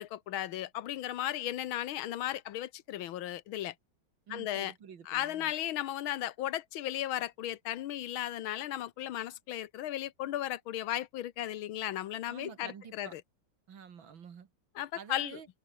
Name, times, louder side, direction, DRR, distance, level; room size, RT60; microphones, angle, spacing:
voice 1, 0.0-3.7 4.3-4.7 5.1-13.2 14.8-15.4, left 12 dB, 85° left, 1.7 m, -35 dB
voice 2, 4.3-5.5 12.3-13.1 13.7-14.5 14.9-15.5, right 7 dB, 75° right, 2.6 m, -49 dB
omnidirectional pair, 2.2 m